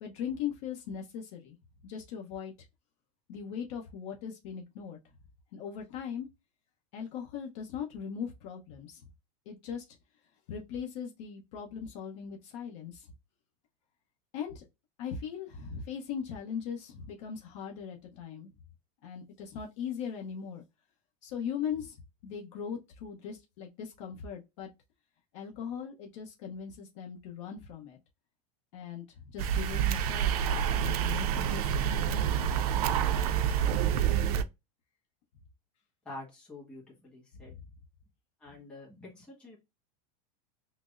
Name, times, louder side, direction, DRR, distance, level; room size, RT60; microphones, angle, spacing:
voice 1, 0.0-1.6 1.8-2.5 3.3-5.0 5.5-6.3 6.9-9.1 9.5-9.9 10.5-13.1 14.3-14.6 15.0-18.5 19.0-20.6 21.2-24.7 25.3-28.0 28.7-29.0 29.3-31.9 37.3-37.6, left 7 dB, 50° left, 0.8 m, -39 dB
sound 1, 29.4-34.4, right 9 dB, 80° right, 0.5 m, -28 dB
voice 2, 36.0-37.5 38.4-39.6, left 2 dB, 5° left, 1.4 m, -47 dB
5.9 x 2.0 x 2.4 m
supercardioid pair, 170°, 19 cm